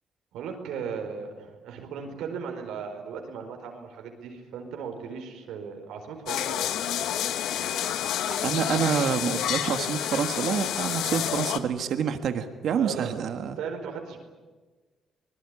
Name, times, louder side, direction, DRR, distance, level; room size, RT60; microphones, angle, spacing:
voice 1, 0.3-6.7 11.1-11.2 12.7-13.2 13.6-14.2, right 6 dB, 85° right, 4 dB, 4.7 m, -37 dB
sound 1, 6.3-11.6, left 10 dB, 85° left, 1.4 m, -29 dB
voice 2, 8.3-13.6, right 7 dB, 70° right, 8 dB, 1.6 m, -28 dB
25.0 x 20.0 x 9.9 m, 1.3 s
cardioid pair, 90°, 0 cm